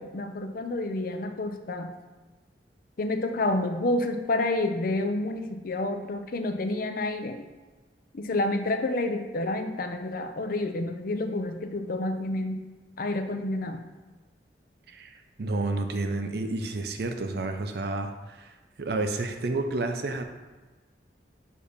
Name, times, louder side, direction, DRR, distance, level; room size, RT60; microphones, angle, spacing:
voice 1, 0.0-2.0 3.0-7.4 8.1-12.6 13.0-13.9, left 2 dB, 55° left, 7 dB, 0.5 m, -29 dB
voice 2, 14.9-18.5 18.8-20.2, right 2 dB, 60° right, 6 dB, 0.5 m, -30 dB
6.7 x 2.8 x 5.0 m, 1.2 s
head